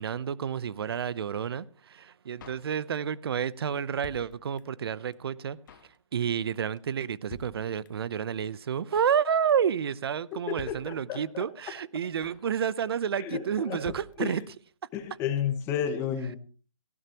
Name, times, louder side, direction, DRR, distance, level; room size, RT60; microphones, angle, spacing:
voice 1, 0.0-5.6 6.1-14.4, right 8 dB, 50° right, 20 dB, 0.8 m, -30 dB
Drum kit, 2.4-3.2 3.5-3.6 3.8-4.9 5.1-5.2 5.4-6.0 6.2-6.5 6.8-6.9 7.0-7.1 7.3-8.1 8.4-8.5 8.7-9.2 9.5-9.8 10.0-10.1 10.3-10.4 10.6-11.4 11.7-11.8 11.9-12.5 12.8-13.0 13.3-13.4 13.6-13.7 13.8-14.7 14.9-15.0 15.2-15.3, left 6 dB, 40° left, 1.5 m, -49 dB
voice 2, 10.3-11.4 13.2-13.8 14.2-14.5 14.9-16.4, left 8 dB, 15° left, 8 dB, 1.4 m, -32 dB
18.5 x 16.0 x 3.0 m, 0.36 s
hypercardioid pair, 155°, 16 cm